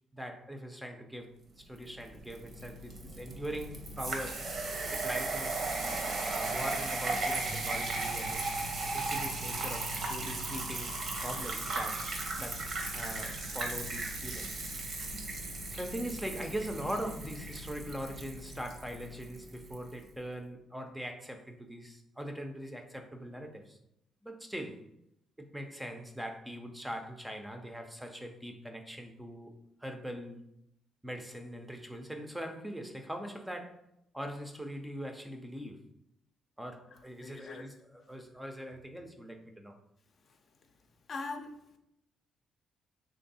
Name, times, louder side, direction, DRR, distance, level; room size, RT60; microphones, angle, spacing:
voice 1, 0.1-1.3 1.6-4.4 4.9-12.0 12.3-12.6 12.9-14.5 15.0-15.2 15.7-23.8 24.2-24.8 25.4-29.5 29.8-30.4 31.0-33.8 34.1-35.8 36.6-39.7, equal, 5° right, 4 dB, 0.5 m, -41 dB
sound 1, 1.8-19.8, right 2 dB, 55° right, 0.8 m, -36 dB
sound 2, 7.5-18.7, right 1 dB, 80° right, 1.2 m, -51 dB
voice 2, 37.2-37.6 41.1-41.8, left 3 dB, 55° left, 4 dB, 0.5 m, -41 dB
3.1 x 2.6 x 4.0 m, 0.79 s
cardioid pair, 90°, 0 cm